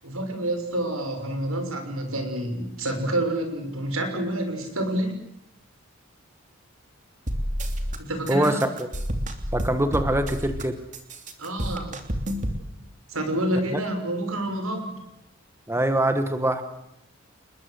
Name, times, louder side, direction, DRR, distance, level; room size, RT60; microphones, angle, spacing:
voice 1, 0.0-5.2 8.0-8.6 11.4-12.0 13.1-14.9, right 1 dB, 80° right, 6 dB, 6.4 m, -28 dB
sound 1, 7.3-8.0 8.3-10.6 10.9-12.6, equal, 35° right, 3.0 m, -29 dB
voice 2, 8.3-8.9 9.5-10.8 13.7-13.8 15.7-16.6, right 1 dB, 10° right, 8 dB, 1.5 m, -23 dB
30.0 x 21.0 x 8.1 m, 0.79 s
head